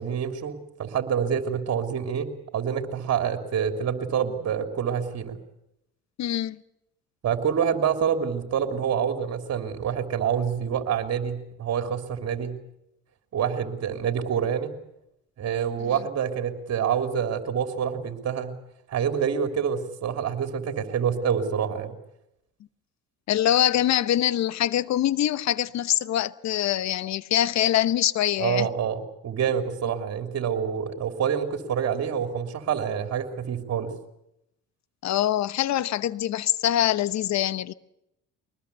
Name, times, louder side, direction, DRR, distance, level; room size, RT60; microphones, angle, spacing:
voice 1, 0.0-5.4 7.2-12.6 13.3-14.7 15.4-18.6 18.9-21.9 28.4-33.9, right 8 dB, 50° right, 3.2 m, -27 dB
voice 2, 6.2-6.6 23.3-28.7 35.0-37.7, left 12 dB, 60° left, 1.0 m, -24 dB
23.5 x 20.0 x 8.3 m
supercardioid pair, 70°, 31 cm